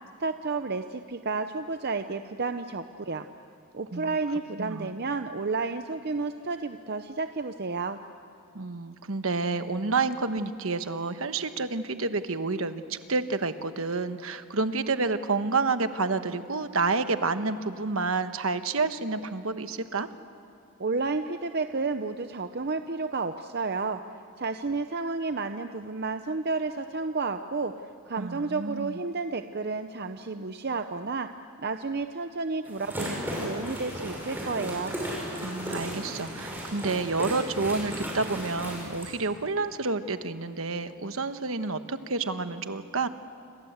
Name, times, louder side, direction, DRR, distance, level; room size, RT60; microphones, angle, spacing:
voice 1, 0.2-3.3 3.7-8.0 20.8-24.0 24.4-27.7 28.1-31.3 31.6-35.0, right 4 dB, 45° right, 8 dB, 0.7 m, -31 dB
voice 2, 4.6-4.9 8.5-20.1 28.2-29.0 35.4-43.1, right 3 dB, 65° right, 10 dB, 1.2 m, -29 dB
sound 1, 32.6-39.1, equal, 10° right, 6.9 m, -35 dB
28.0 x 25.5 x 8.1 m, 2.5 s
head